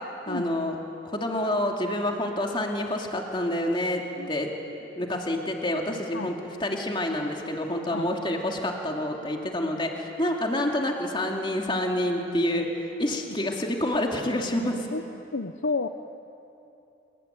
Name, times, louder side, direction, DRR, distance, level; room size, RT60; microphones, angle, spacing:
voice 1, 0.3-0.8 1.0-4.0 4.3-4.5 5.0-6.3 6.6-12.7 13.0-14.9, left 1 dB, 25° left, 1 dB, 2.6 m, -28 dB
voice 2, 15.3-15.9, left 3 dB, 85° left, 7 dB, 0.9 m, -30 dB
27.5 x 23.0 x 9.3 m, 2.9 s
head